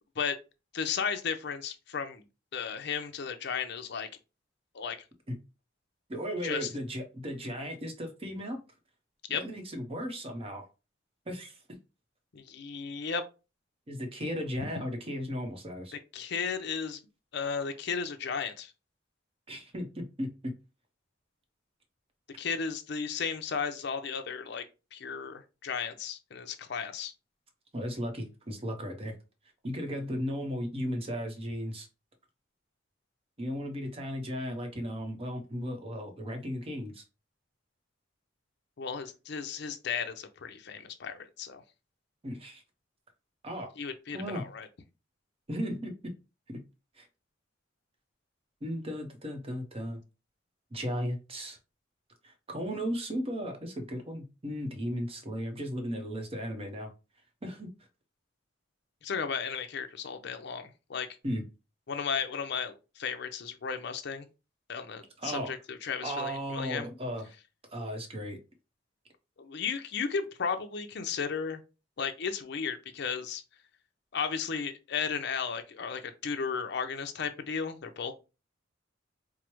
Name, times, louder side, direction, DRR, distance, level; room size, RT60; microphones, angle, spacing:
voice 1, 0.7-2.2 2.5-4.1 4.7-5.0 6.4-6.7 9.3-9.4 12.3-13.2 14.6-14.7 15.9-17.0 17.3-18.7 22.4-24.6 24.9-27.1 38.8-41.6 43.8-44.7 59.0-61.1 61.9-64.3 64.7-66.9 69.4-71.6 72.0-73.4 74.1-78.1, left 6 dB, 60° left, 0.5 m, -34 dB
voice 2, 6.1-8.6 9.3-10.6 11.3-11.6 13.9-15.9 19.5-20.5 27.7-29.1 29.6-31.9 33.4-37.0 42.2-42.6 43.4-43.7 44.1-44.4 45.5-46.1 46.5-46.6 47.0-47.1 48.6-50.0 50.7-51.6 52.2-56.9 57.4-57.7 61.2-61.4 65.2-65.5 66.0-67.2 67.7-68.4, equal, 30° right, 0.7 m, -35 dB
4.6 x 2.0 x 3.0 m
head